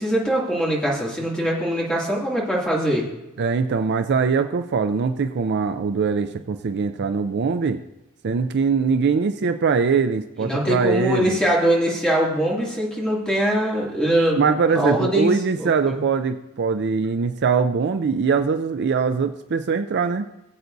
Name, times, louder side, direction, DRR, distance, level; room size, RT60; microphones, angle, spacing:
voice 1, 0.0-3.1 10.4-14.4 14.7-16.0, equal, 5° left, -4 dB, 2.4 m, -22 dB
voice 2, 3.4-7.8 8.2-11.4 14.4-20.3, right 5 dB, 50° right, 9 dB, 0.4 m, -22 dB
19.5 x 8.0 x 2.6 m, 0.98 s
head